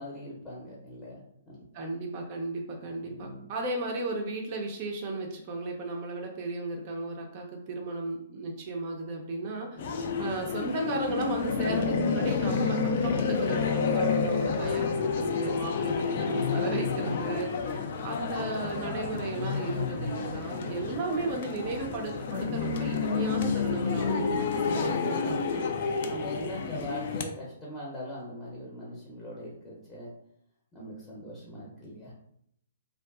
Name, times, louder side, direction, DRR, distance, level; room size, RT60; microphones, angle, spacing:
voice 1, 0.0-1.6 2.8-3.5 9.7-10.0 17.7-18.0 20.5-21.0 24.3-25.4 25.9-30.1 30.7-32.1, equal, 10° left, -5 dB, 0.7 m, -42 dB
voice 2, 1.7-9.7 10.2-25.7 26.8-26.9, right 3 dB, 40° right, 1 dB, 0.4 m, -35 dB
sound 1, 9.8-27.2, left 5 dB, 50° left, 0.3 m, -30 dB
2.5 x 2.2 x 2.3 m, 0.69 s
figure-of-eight pair, 120°, 0 cm